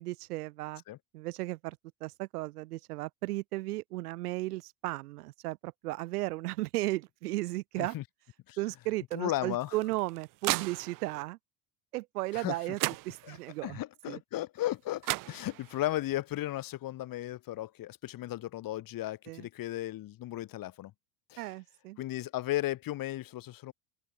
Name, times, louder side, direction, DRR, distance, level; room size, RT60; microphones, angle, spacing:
voice 1, 0.0-0.8 1.1-7.9 8.6-11.4 11.9-12.8 13.0-13.8 14.1-14.2 19.3-19.5 21.4-22.0, right 19 dB, 85° right, 1.5 m, -35 dB
voice 2, 9.1-9.7 12.3-12.6 13.2-20.9 21.3-21.5 22.0-23.7, left 15 dB, 50° left, 1.5 m, -35 dB
sound 1, 9.6-11.2 12.4-12.5 12.8-13.6 14.7-14.8 15.0-15.9, right 21 dB, 50° right, 0.6 m, -35 dB
open air
hypercardioid pair, 85°, 44 cm